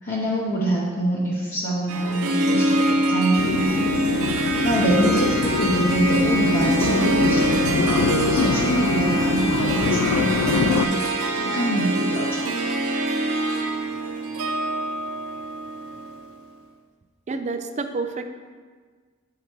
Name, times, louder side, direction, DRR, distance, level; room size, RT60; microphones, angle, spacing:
voice 1, 0.0-4.0 4.6-7.9 8.3-12.4, right 1 dB, 40° left, -6 dB, 0.9 m, -25 dB
Harp, 1.9-16.4, right 1 dB, 75° right, 0.6 m, -25 dB
sound 1, 3.4-10.9, left 5 dB, 75° left, 0.3 m, -24 dB
Trumpet, 5.2-13.7, right 2 dB, 15° right, 1.2 m, -33 dB
voice 2, 17.3-18.3, right 3 dB, 35° right, 8 dB, 0.4 m, -28 dB
7.8 x 4.8 x 4.5 m, 1.5 s
head